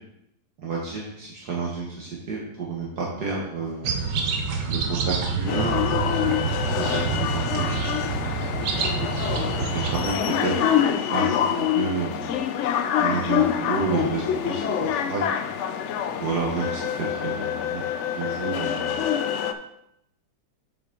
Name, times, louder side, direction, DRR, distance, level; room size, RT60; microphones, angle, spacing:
voice 1, 0.6-3.9 4.7-5.8 6.7-7.8 9.5-10.5 10.8-12.3 13.0-14.6 14.9-15.3 16.2-16.8 17.1-17.8 18.1-19.0, right 4 dB, 65° right, -4 dB, 1.8 m, -30 dB
sound 1, 3.8-10.1, right 5 dB, 85° right, 1.6 m, -27 dB
sound 2, 5.5-19.5, left 9 dB, 80° left, 0.6 m, -26 dB
7.2 x 6.8 x 3.8 m, 0.79 s
omnidirectional pair, 1.9 m